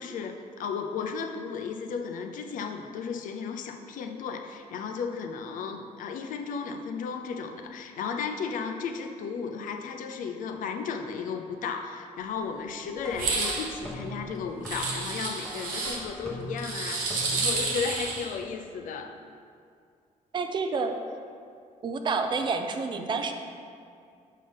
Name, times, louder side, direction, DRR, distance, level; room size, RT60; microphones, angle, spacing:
voice 1, 0.0-19.2, left 5 dB, 80° left, 5 dB, 0.5 m, -34 dB
sound 1, 13.0-17.7, right 1 dB, 5° left, 0.9 m, -41 dB
sound 2, 13.1-13.7 14.7-16.0 16.6-18.3, right 3 dB, 85° right, 0.9 m, -30 dB
voice 2, 20.3-21.0 21.8-23.3, right 4 dB, 35° right, 6 dB, 0.4 m, -29 dB
6.5 x 5.6 x 3.4 m, 2.3 s
cardioid pair, 165°, 14 cm